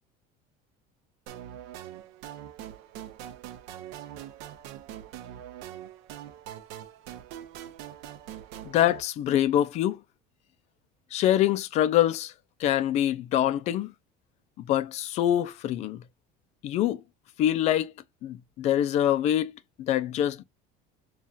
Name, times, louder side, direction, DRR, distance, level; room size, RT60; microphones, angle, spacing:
sound 1, 1.3-9.0, right 11 dB, 65° right, 0.7 m, -43 dB
voice 1, 8.6-10.0 11.1-12.3 12.6-13.9 14.6-16.0 16.6-17.0 17.4-17.9 18.2-19.5 19.8-20.4, left 11 dB, 35° left, 0.4 m, -25 dB
5.5 x 2.3 x 2.4 m
cardioid pair, 175°, 19 cm